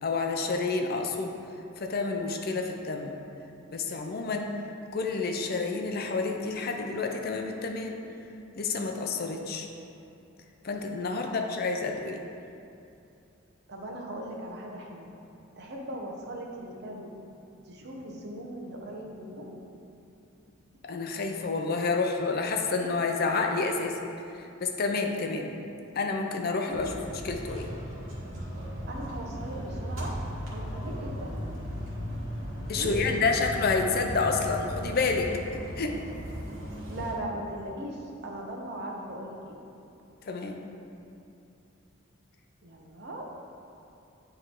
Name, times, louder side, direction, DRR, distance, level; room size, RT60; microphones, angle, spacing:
voice 1, 0.0-1.3 1.8-3.1 3.7-4.5 4.9-8.0 8.6-9.7 10.6-12.2 20.9-23.9 24.3-25.5 25.9-26.9 27.2-27.7 32.7-35.3 35.8-35.9 40.2-40.6, left 4 dB, 50° left, 3 dB, 0.5 m, -29 dB
voice 2, 11.1-11.5 13.7-15.1 15.6-17.1 17.6-19.5 26.6-26.8 28.9-30.1 30.5-31.4 32.7-33.5 33.8-34.1 36.9-39.6 42.6-43.2, right 1 dB, 55° right, -1 dB, 0.8 m, -39 dB
sound 1, 26.7-37.1, equal, 70° right, 1.5 m, -36 dB
9.6 x 3.3 x 3.7 m, 2.7 s
head